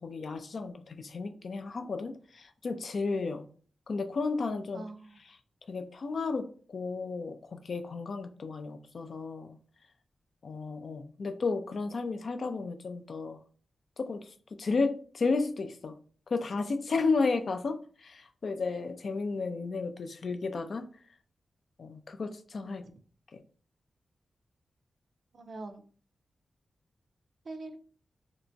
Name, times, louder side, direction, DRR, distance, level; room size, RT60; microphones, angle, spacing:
voice 1, 0.0-3.4 3.9-4.8 5.7-9.6 10.4-13.4 14.0-16.0 16.3-20.9 21.8-22.8 23.3-23.4, left 4 dB, 65° left, 0.3 m, -33 dB
voice 2, 4.7-5.2 22.8-22.9 25.3-25.8 27.4-27.8, right 2 dB, 65° right, 0.4 m, -43 dB
2.8 x 2.1 x 2.6 m
cardioid pair, 50°, 0 cm